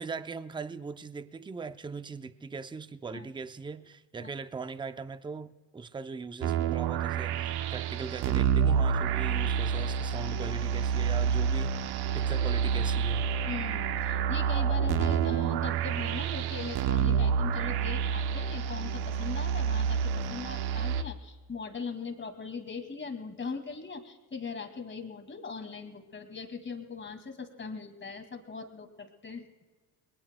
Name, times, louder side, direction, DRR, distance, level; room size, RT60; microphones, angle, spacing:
voice 1, 0.0-13.3, right 4 dB, 10° right, 0.5 m, -40 dB
sound 1, 6.4-21.0, right 7 dB, 60° right, 0.9 m, -28 dB
voice 2, 13.5-29.5, left 5 dB, 25° left, 2.2 m, -40 dB
29.0 x 21.5 x 2.2 m
cardioid pair, 100°, 45 cm